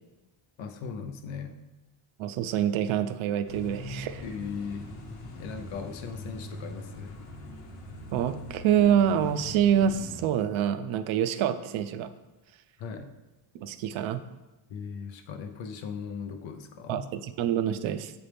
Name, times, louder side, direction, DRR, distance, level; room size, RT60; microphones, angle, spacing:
voice 1, 0.6-1.6 4.2-4.9 5.4-7.2 12.8-13.1 14.7-17.1, left 6 dB, 65° left, 7 dB, 0.7 m, -38 dB
voice 2, 2.2-4.2 8.1-12.1 13.5-14.2 16.9-18.1, right 9 dB, 70° right, 11 dB, 0.5 m, -26 dB
sound 1, 3.5-10.2, left 2 dB, 85° left, 1.2 m, -42 dB
7.1 x 4.3 x 3.4 m, 1.1 s
cardioid pair, 135°, 50 cm